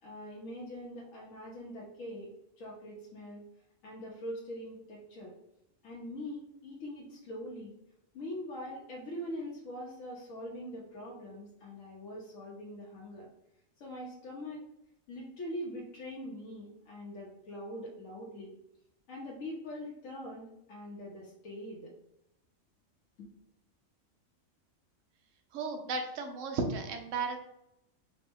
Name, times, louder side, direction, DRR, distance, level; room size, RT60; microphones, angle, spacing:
voice 1, 0.0-2.3 2.6-3.4 3.8-5.3 5.8-7.7 8.1-13.3 13.8-14.6 15.1-18.5 19.1-21.9, left 1 dB, 70° left, -4 dB, 1.1 m, -43 dB
voice 2, 25.5-27.4, right 4 dB, 70° right, 4 dB, 1.0 m, -34 dB
5.0 x 2.2 x 3.4 m, 0.81 s
omnidirectional pair, 1.4 m